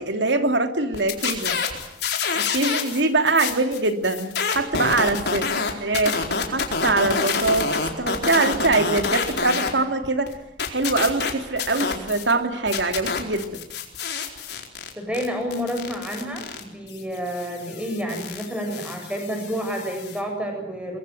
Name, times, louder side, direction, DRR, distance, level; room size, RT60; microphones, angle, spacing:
voice 1, 0.0-1.6 2.3-5.4 5.8-10.3 10.7-13.6, right 3 dB, 90° right, 7 dB, 3.0 m, -23 dB
sound 1, 0.9-3.0 3.3-9.7 10.0-12.3 12.7-20.2, left 5 dB, 65° left, 4.5 m, -27 dB
voice 2, 14.9-21.0, equal, 5° right, 4 dB, 7.8 m, -29 dB
23.5 x 22.5 x 9.3 m, 0.85 s
head